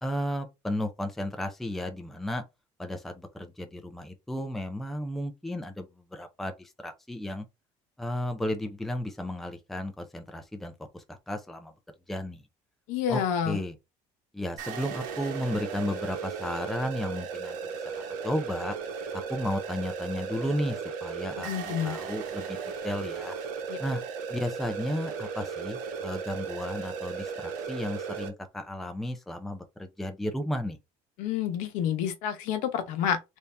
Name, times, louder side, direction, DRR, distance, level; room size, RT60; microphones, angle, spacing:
voice 1, 0.0-2.4 2.8-7.4 8.0-11.7 12.1-12.4 13.1-13.7 14.3-17.7 18.2-18.8 19.3-22.6 22.8-23.3 23.8-24.0 24.3-30.8, left 1 dB, ahead, 0.4 m, -33 dB
voice 2, 12.9-13.6 21.4-22.0 23.7-23.8 31.2-33.4, left 9 dB, 80° left, 0.9 m, -29 dB
sound 1, 14.6-28.3, right 6 dB, 80° right, 1.1 m, -36 dB
3.5 x 2.7 x 3.2 m
cardioid pair, 170°, 13 cm